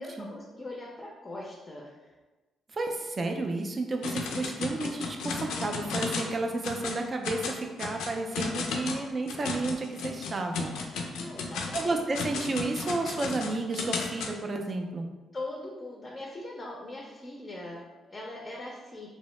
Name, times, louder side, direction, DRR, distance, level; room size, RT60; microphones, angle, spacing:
voice 1, 0.0-2.1 11.1-12.0 15.3-19.1, left 2 dB, 25° left, -3 dB, 0.5 m, -41 dB
voice 2, 2.7-10.7 11.7-15.1, right 2 dB, 35° right, 3 dB, 0.4 m, -32 dB
sound 1, 4.0-6.3 6.6-7.0 7.2-14.3, left 4 dB, 85° left, 0.3 m, -34 dB
2.7 x 2.0 x 3.1 m, 1.2 s
cardioid pair, 90°, 0 cm